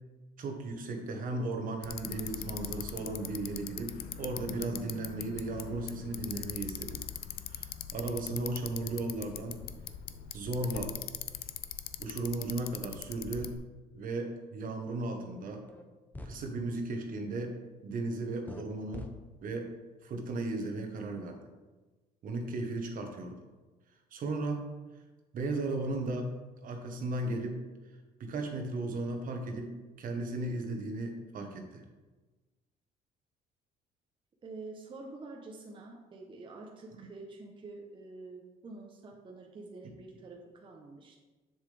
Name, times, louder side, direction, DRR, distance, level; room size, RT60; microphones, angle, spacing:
voice 1, 0.4-7.0 7.5-9.7 10.3-11.0 12.0-13.6 13.9-15.6 16.2-17.5 17.8-19.1 19.4-19.7 20.0-21.4 22.2-23.4 24.1-24.7 25.3-26.3 26.6-27.6 28.2-29.7 30.0-31.8 37.0-37.1, right 2 dB, 55° right, 4 dB, 1.2 m, -36 dB
Bicycle, 1.8-13.6, left 10 dB, 65° left, 0.5 m, -41 dB
sound 1, 15.7-15.8 16.1-16.4 18.5-18.6 18.9-19.1, left 1 dB, 10° left, 0.7 m, -43 dB
voice 2, 34.4-41.2, right 3 dB, 30° right, 0 dB, 0.9 m, -47 dB
7.3 x 6.6 x 3.4 m, 1.2 s
cardioid pair, 110°, 17 cm